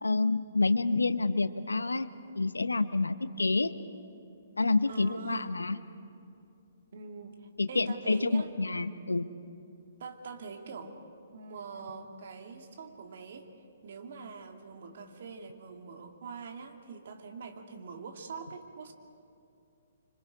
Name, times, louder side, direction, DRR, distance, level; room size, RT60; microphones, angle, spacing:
voice 1, 0.0-2.1 2.3-3.7 4.6-5.8 7.6-9.3, left 3 dB, 85° left, 13 dB, 0.8 m, -28 dB
voice 2, 4.9-5.5 6.9-8.5 10.0-11.0 11.3-13.5 13.8-18.9, right 5 dB, 60° right, 4 dB, 2.2 m, -44 dB
26.0 x 26.0 x 5.0 m, 2.5 s
figure-of-eight pair, 130°, 0 cm